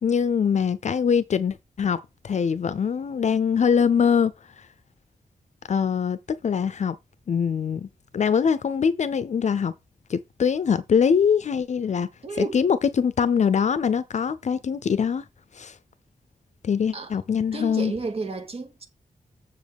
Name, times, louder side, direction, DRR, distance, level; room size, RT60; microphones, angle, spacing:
voice 1, 0.0-4.7 5.7-7.0 7.3-9.7 10.1-12.1 12.4-15.2 15.5-15.8 16.6-17.9, left 7 dB, 60° left, 0.5 m, -23 dB
voice 2, 12.2-12.6 16.9-18.9, right 3 dB, 45° right, 2.1 m, -32 dB
7.4 x 7.2 x 3.6 m
wide cardioid pair, 170°, 14 cm